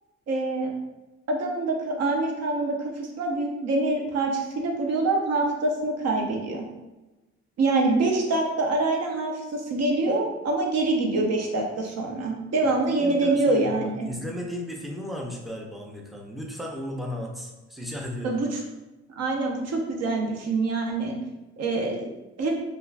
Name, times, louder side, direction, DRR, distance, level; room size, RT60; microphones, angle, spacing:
voice 1, 0.3-0.7 1.3-6.6 7.6-14.1 18.2-18.6 19.2-21.1 21.6-22.1 22.4-22.5, right 2 dB, 55° right, 1 dB, 0.7 m, -25 dB
voice 2, 13.0-18.4, left 1 dB, ahead, 0 dB, 0.5 m, -35 dB
2.4 x 2.3 x 3.2 m, 1.1 s
cardioid pair, 90°, 30 cm